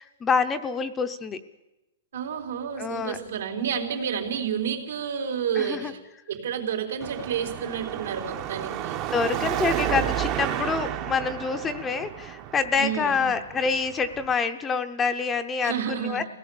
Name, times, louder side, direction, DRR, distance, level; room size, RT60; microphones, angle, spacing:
voice 1, 0.0-1.4 2.8-3.2 5.5-5.9 9.1-16.2, left 5 dB, 15° left, 8 dB, 0.7 m, -27 dB
voice 2, 2.1-6.0 6.3-9.0 12.8-13.3 15.6-16.2, right 8 dB, 80° right, 4 dB, 3.7 m, -30 dB
Car passing by / Traffic noise roadway noise / Engine, 7.0-14.3, right 11 dB, 30° right, 0.9 m, -31 dB
24.0 x 17.5 x 7.0 m, 1.0 s
hypercardioid pair, 165°, 0 cm